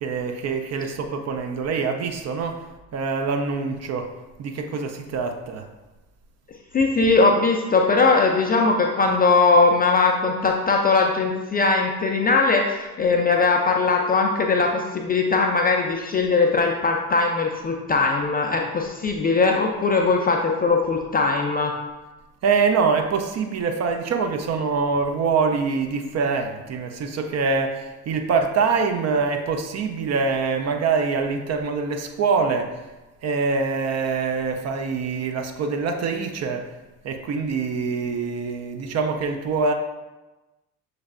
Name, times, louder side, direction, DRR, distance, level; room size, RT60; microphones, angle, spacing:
voice 1, 0.0-4.1 4.4-5.7 22.4-32.8 33.2-36.7 37.0-39.7, right 5 dB, 35° right, 5 dB, 0.5 m, -24 dB
voice 2, 6.7-21.7, left 3 dB, 20° left, 1 dB, 0.4 m, -20 dB
6.2 x 3.2 x 2.4 m, 1.1 s
figure-of-eight pair, 45°, 46 cm